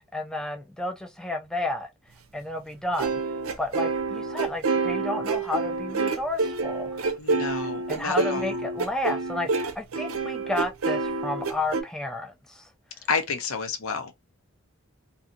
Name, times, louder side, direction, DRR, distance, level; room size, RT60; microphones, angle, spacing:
voice 1, 0.1-1.9 2.3-3.2 3.6-7.0 7.9-12.7, left 1 dB, 5° left, 0.4 m, -31 dB
sound 1, 2.9-11.8, right 3 dB, 80° right, 0.6 m, -27 dB
voice 2, 7.2-8.5 13.1-14.1, left 5 dB, 75° left, 0.6 m, -30 dB
2.7 x 2.6 x 2.5 m
head